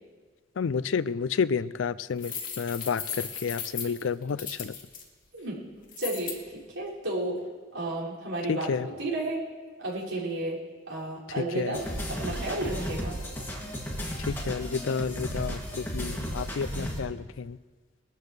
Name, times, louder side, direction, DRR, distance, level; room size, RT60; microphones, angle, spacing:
voice 1, 0.6-4.7 8.5-8.9 11.4-11.8 14.2-17.6, left 6 dB, 70° left, 17 dB, 0.4 m, -30 dB
sound 1, 2.2-5.0 5.9-6.4, left 7 dB, 45° left, 2.5 m, -36 dB
voice 2, 6.0-7.4 7.7-9.4 9.8-10.6 10.9-11.8 12.1-13.2, right 2 dB, 80° right, -7 dB, 5.7 m, -32 dB
sound 2, 11.7-17.0, equal, 10° left, 2.4 m, -34 dB
22.5 x 13.0 x 3.3 m, 1.4 s
head